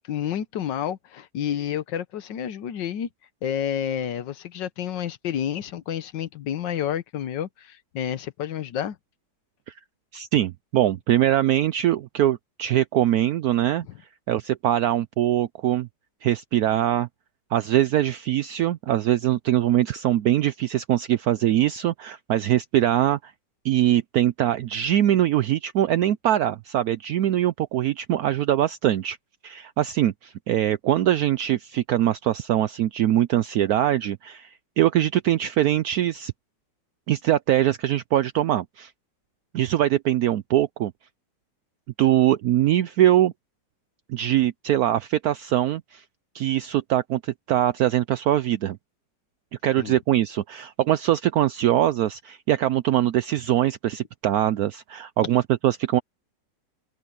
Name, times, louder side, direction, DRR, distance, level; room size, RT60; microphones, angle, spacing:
voice 1, 0.1-3.1 3.4-9.0 49.8-50.0, left 9 dB, 85° left, 1.6 m, -29 dB
voice 2, 10.1-13.9 14.3-15.9 16.2-17.1 17.5-23.3 23.6-29.2 29.4-36.3 37.1-38.9 39.5-40.9 42.0-43.3 44.1-46.0 46.3-48.8 49.6-56.0, right 12 dB, 70° right, 1.0 m, -22 dB
open air
omnidirectional pair, 1.9 m